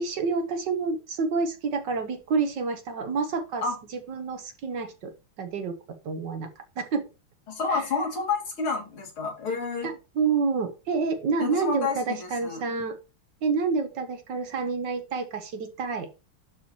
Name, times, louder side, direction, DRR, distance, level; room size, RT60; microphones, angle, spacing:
voice 1, 0.0-3.6 3.9-5.8 6.0-7.1 7.7-7.8 9.8-13.0 13.4-16.1, right 4 dB, 65° right, 7 dB, 1.4 m, -28 dB
voice 2, 7.5-9.9 11.4-12.6, left 4 dB, 75° left, 0 dB, 3.3 m, -29 dB
11.5 x 4.4 x 2.9 m, 0.28 s
omnidirectional pair, 2.3 m